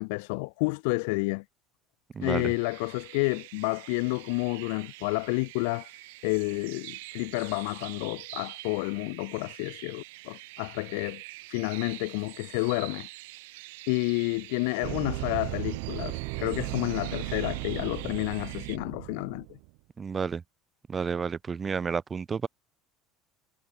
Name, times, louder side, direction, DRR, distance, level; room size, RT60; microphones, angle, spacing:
voice 1, 0.0-1.4 2.2-11.2 11.5-13.1 13.9-19.5, left 30 dB, 70° left, 0.8 m, -30 dB
voice 2, 2.1-2.5 20.0-20.4 20.9-22.5, right 6 dB, 15° right, 1.0 m, -31 dB
sound 1, 2.2-18.8, right 23 dB, 85° right, 1.7 m, -46 dB
sound 2, 14.8-19.7, right 40 dB or more, 60° right, 1.0 m, -35 dB
cardioid pair, 175°, 0 cm